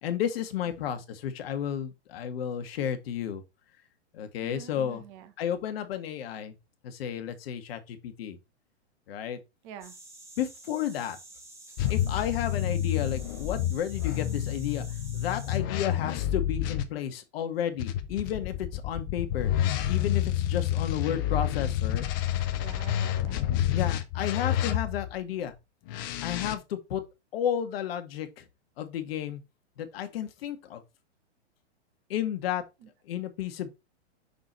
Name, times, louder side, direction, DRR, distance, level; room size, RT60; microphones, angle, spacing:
voice 1, 0.0-3.4 4.1-5.0 5.4-6.6 6.8-8.4 9.1-9.4 10.4-11.2 11.9-14.8 15.1-19.5 19.9-22.1 23.7-25.5 26.2-27.0 27.3-28.4 28.8-29.4 29.8-30.8 32.1-32.6 33.1-33.7, left 9 dB, 55° left, 1.4 m, -32 dB
voice 2, 4.4-5.3 9.6-9.9 22.6-23.4 32.8-32.9, right 10 dB, 35° right, 1.1 m, -46 dB
sound 1, 9.8-15.6, right 2 dB, 10° right, 1.2 m, -50 dB
sound 2, 11.8-16.8 17.8-25.2 25.9-26.5, left 11 dB, 20° left, 0.3 m, -29 dB
6.0 x 4.1 x 4.3 m
hypercardioid pair, 140°, 35 cm